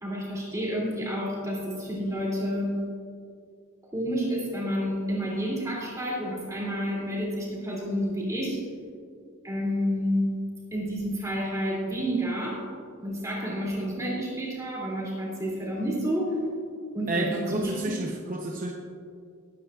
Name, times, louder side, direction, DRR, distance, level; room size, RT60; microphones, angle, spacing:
voice 1, 0.0-2.8 3.9-8.6 9.4-10.3 10.7-12.6 13.0-16.3 16.9-18.0, equal, 15° right, -5 dB, 2.9 m, -29 dB
voice 2, 17.1-18.7, right 2 dB, 40° right, 0 dB, 0.8 m, -29 dB
20.5 x 9.5 x 2.5 m, 2.3 s
head